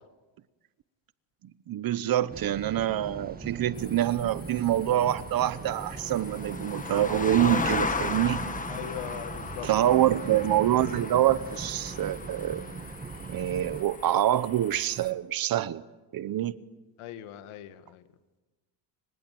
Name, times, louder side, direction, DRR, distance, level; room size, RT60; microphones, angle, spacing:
voice 1, 1.7-8.4 9.6-12.7 13.3-15.8 16.1-16.6, right 12 dB, 45° right, 16 dB, 1.0 m, -26 dB
sound 1, 2.3-13.8, right 4 dB, 20° right, 1.5 m, -40 dB
sound 2, 3.8-15.1, left 4 dB, 15° left, 1.6 m, -36 dB
voice 2, 8.7-9.7 10.3-10.4 17.0-18.0, left 12 dB, 85° left, 10 dB, 2.2 m, -40 dB
30.0 x 25.0 x 7.9 m, 1.2 s
cardioid pair, 150°, 49 cm